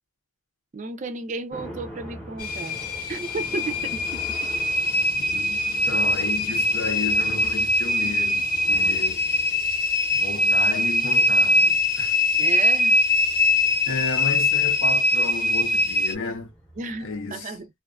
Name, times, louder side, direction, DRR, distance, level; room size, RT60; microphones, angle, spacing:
voice 1, 0.7-2.8 3.1-4.5 12.4-13.0 16.8-17.7, right 3 dB, 35° right, 0.4 m, -33 dB
sound 1, 1.5-17.2, equal, 5° left, 0.7 m, -44 dB
sound 2, 2.4-16.1, left 1 dB, 45° left, 0.6 m, -22 dB
voice 2, 5.1-9.2 10.1-12.2 13.9-16.5 17.0-17.6, left 3 dB, 80° left, 0.7 m, -33 dB
2.5 x 2.3 x 2.3 m
head